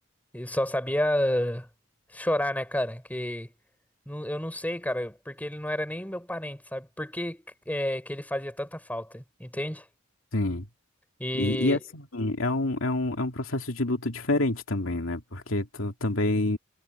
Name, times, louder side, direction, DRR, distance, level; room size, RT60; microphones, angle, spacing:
voice 1, 0.3-1.7 2.1-3.5 4.1-9.9 11.2-11.8, left 1 dB, 10° left, 3.6 m, -30 dB
voice 2, 10.3-10.7 11.4-16.6, left 2 dB, 85° left, 2.5 m, -27 dB
head